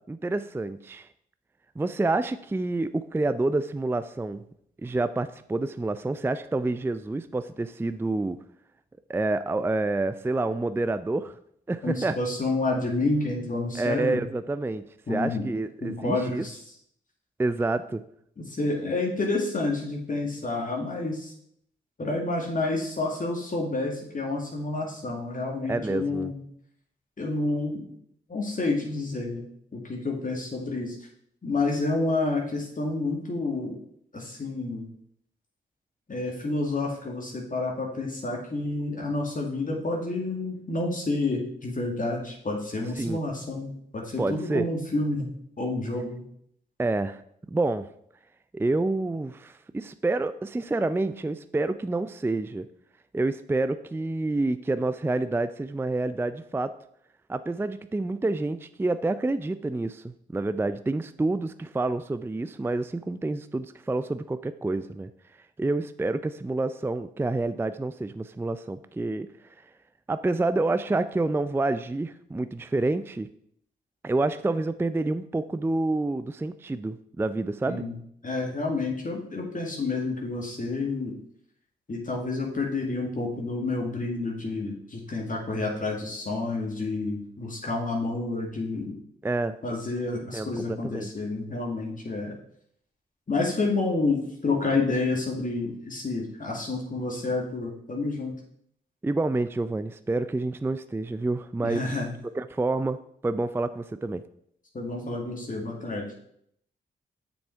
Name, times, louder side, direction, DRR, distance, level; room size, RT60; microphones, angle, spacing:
voice 1, 0.1-1.1 1.8-4.4 4.8-8.4 9.1-11.3 11.7-12.1 13.7-16.4 17.4-18.0 25.7-26.3 43.0-43.2 44.2-44.7 46.8-47.2 47.5-47.9 48.5-52.7 53.1-56.7 57.3-65.1 65.6-69.3 70.1-73.3 74.0-77.8 89.2-89.6 90.1-91.1 99.0-101.8 102.4-103.0 103.2-104.2, right 2 dB, 10° right, 12 dB, 0.4 m, -28 dB
voice 2, 11.8-14.2 15.1-15.4 15.8-16.6 18.4-21.3 22.0-26.4 27.2-27.9 28.3-29.4 29.7-31.0 31.4-33.8 34.1-34.9 36.1-45.3 45.6-46.2 77.7-78.0 78.2-81.1 81.9-89.0 89.6-92.4 93.3-98.3 101.6-102.1 104.7-106.1, left 3 dB, 40° left, -1 dB, 2.0 m, -29 dB
6.8 x 6.3 x 4.5 m, 0.70 s
hypercardioid pair, 40°, 21 cm